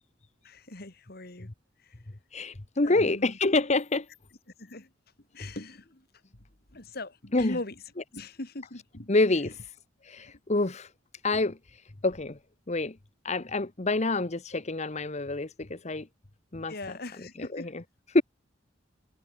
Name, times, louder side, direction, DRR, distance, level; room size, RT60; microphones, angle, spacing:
voice 1, 0.4-1.5 1.8-1.9 2.8-3.4 4.6-4.9 5.3-6.0 6.7-7.7 8.1-9.1 16.7-17.7, left 2 dB, 55° left, 2.7 m, -40 dB
voice 2, 2.3-4.1 7.3-7.6 9.1-9.6 10.0-10.9 11.2-12.4 12.7-13.0 13.2-16.1 16.5-16.7 17.4-17.8 18.1-18.2, left 2 dB, 40° left, 1.1 m, -27 dB
head